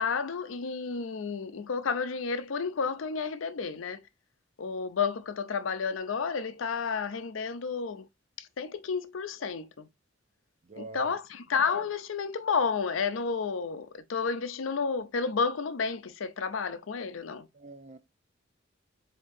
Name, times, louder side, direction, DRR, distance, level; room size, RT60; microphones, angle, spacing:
voice 1, 0.0-4.0 4.6-8.1 8.4-9.9 10.8-17.5, left 5 dB, 80° left, 0.5 m, -31 dB
voice 2, 10.6-11.2 17.5-18.0, right 3 dB, 35° right, 0.5 m, -46 dB
7.3 x 2.8 x 2.6 m
head